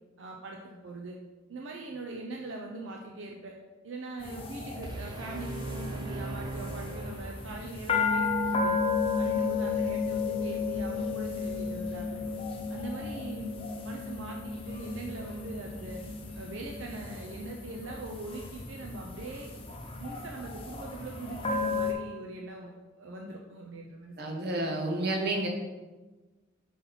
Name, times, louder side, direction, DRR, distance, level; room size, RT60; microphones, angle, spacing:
voice 1, 0.2-1.2 1.5-3.6 3.8-8.8 9.1-12.3 12.7-13.5 13.8-16.0 16.3-19.5 20.0-24.4, right 2 dB, 75° right, 0 dB, 0.6 m, -42 dB
sound 1, 4.2-21.9, left 4 dB, 30° left, 0.7 m, -33 dB
sound 2, 4.8-7.8, right 2 dB, 25° right, 0.5 m, -39 dB
voice 2, 24.2-25.5, right 2 dB, 55° right, 1 dB, 1.0 m, -30 dB
5.7 x 4.2 x 4.0 m, 1.2 s
head